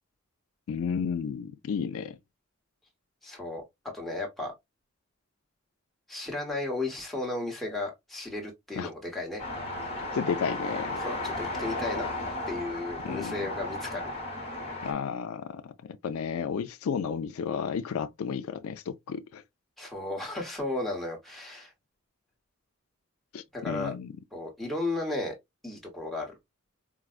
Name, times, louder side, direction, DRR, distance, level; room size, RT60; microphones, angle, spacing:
voice 1, 0.7-2.2 8.8-8.9 10.1-11.0 13.0-13.4 14.8-19.4 23.3-24.1, left 6 dB, 75° left, 0.3 m, -32 dB
voice 2, 3.2-3.6 3.9-4.5 6.1-9.4 11.0-12.0 12.5-14.1 19.8-21.7 23.5-23.9 24.3-25.3 25.6-26.3, left 2 dB, ahead, 0.9 m, -34 dB
sound 1, 9.4-14.9, left 2 dB, 25° left, 0.9 m, -34 dB
4.5 x 2.0 x 2.3 m
head